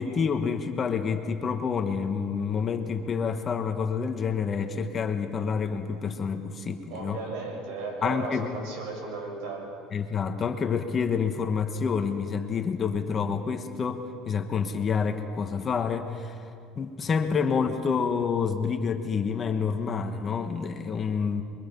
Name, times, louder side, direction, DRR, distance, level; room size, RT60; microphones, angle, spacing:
voice 1, 0.0-7.2 8.0-8.5 9.9-16.4 16.7-21.4, left 6 dB, 30° left, 6 dB, 1.5 m, -28 dB
voice 2, 6.9-9.7, right 3 dB, 80° right, 0 dB, 6.5 m, -35 dB
27.5 x 23.5 x 5.5 m, 2.4 s
cardioid pair, 125°, 0 cm